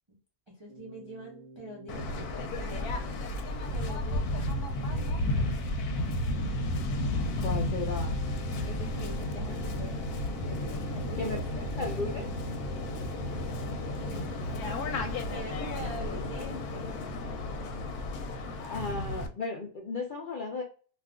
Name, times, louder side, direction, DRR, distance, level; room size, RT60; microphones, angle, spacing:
voice 1, 0.5-3.1 3.7-5.3 8.6-11.4 13.2-17.1, right 1 dB, 40° right, -3 dB, 0.4 m, -45 dB
Keyboard (musical), 0.7-15.7, right 3 dB, 25° left, 0.8 m, -49 dB
Waves surf, 1.9-19.3, left 1 dB, 85° left, 1.1 m, -33 dB
voice 2, 7.4-8.2 11.2-12.3 18.6-20.6, left 3 dB, 60° left, -1 dB, 0.5 m, -35 dB
2.5 x 2.3 x 3.5 m, 0.38 s
omnidirectional pair, 1.5 m